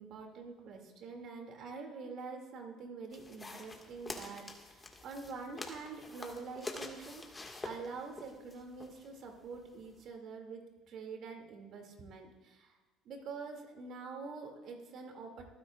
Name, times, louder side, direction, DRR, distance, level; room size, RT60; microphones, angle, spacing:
voice 1, 0.0-12.8 13.0-15.4, right 4 dB, 60° right, 2 dB, 2.7 m, -46 dB
sound 1, 3.1-10.1, left 2 dB, 20° left, 2.0 m, -47 dB
26.0 x 10.0 x 2.5 m, 1.3 s
hypercardioid pair, 65°, 0 cm